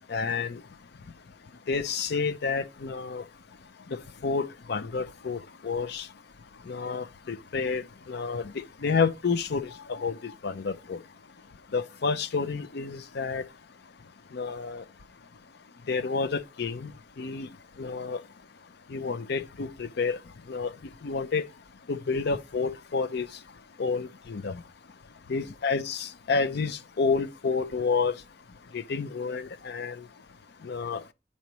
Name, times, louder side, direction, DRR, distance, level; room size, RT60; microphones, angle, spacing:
voice 1, 0.1-0.6 1.7-3.2 4.2-6.1 6.7-8.5 8.8-11.0 11.7-13.4 14.3-14.8 15.9-16.9 17.2-17.5 17.8-18.2 18.9-20.2 20.5-20.7 21.0-21.4 21.9-23.3 23.8-24.6 25.3-28.2 28.7-30.0 30.6-31.0, left 4 dB, 60° left, 0.5 m, -29 dB
10.5 x 4.2 x 3.0 m
head